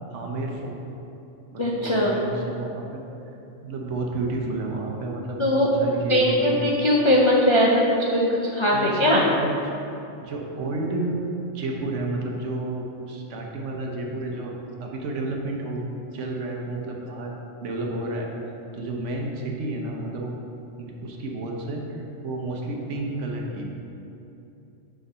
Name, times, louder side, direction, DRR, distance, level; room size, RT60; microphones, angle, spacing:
voice 1, 0.1-0.8 1.5-3.0 3.6-6.7 8.7-9.6 10.2-11.2 11.5-14.5 14.8-15.8 16.1-17.3 17.6-18.3 18.7-20.3 20.8-23.6, right 2 dB, 70° right, 0 dB, 1.2 m, -31 dB
voice 2, 1.6-2.2 5.4-5.7 6.1-7.8 8.1-9.2, left 1 dB, 45° left, -4 dB, 0.4 m, -20 dB
6.9 x 3.9 x 5.3 m, 2.9 s
omnidirectional pair, 1.3 m